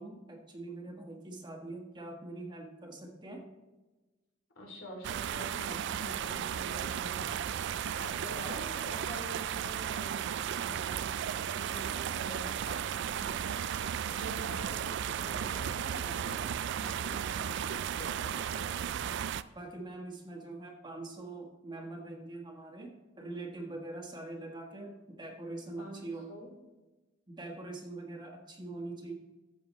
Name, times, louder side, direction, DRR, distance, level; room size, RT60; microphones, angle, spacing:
voice 1, 0.0-3.5 19.5-26.3 27.3-29.1, right 2 dB, 25° right, 1 dB, 1.5 m, -43 dB
voice 2, 4.5-11.0 11.5-16.4 16.8-18.7 25.8-26.5, equal, 80° left, 0 dB, 2.9 m, -47 dB
sound 1, 5.0-19.4, right 9 dB, 65° right, 0.3 m, -35 dB
14.5 x 7.1 x 3.2 m, 1.2 s
head